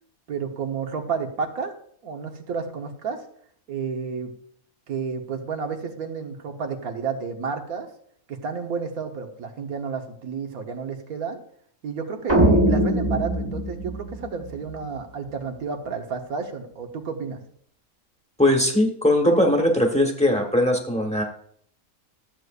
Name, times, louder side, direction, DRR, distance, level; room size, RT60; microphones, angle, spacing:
voice 1, 0.3-1.7 2.0-3.2 3.7-4.3 4.9-7.9 8.3-11.4 11.8-17.4, right 5 dB, 90° right, 4 dB, 1.6 m, -31 dB
sound 1, 12.3-14.8, right 1 dB, 20° right, 1.0 m, -21 dB
voice 2, 18.4-21.2, left 1 dB, 5° left, 2 dB, 1.1 m, -20 dB
13.5 x 7.9 x 2.5 m, 0.62 s
omnidirectional pair, 1.5 m